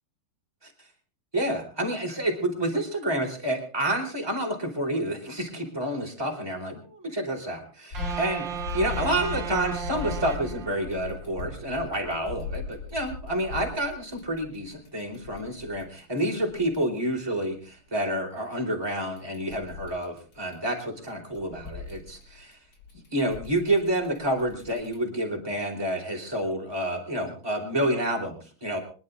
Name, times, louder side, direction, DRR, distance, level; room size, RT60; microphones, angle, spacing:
voice 1, 1.3-8.4 8.7-22.6 23.1-28.8, right 1 dB, 10° right, 0 dB, 4.6 m, -29 dB
sound 1, 7.9-16.8 19.0-20.8 21.1-25.0, left 4 dB, 50° left, 3.8 m, -38 dB
sound 2, 7.9-11.2, right 9 dB, 60° right, 2.2 m, -35 dB
26.0 x 11.0 x 3.6 m, 0.39 s
omnidirectional pair, 2.3 m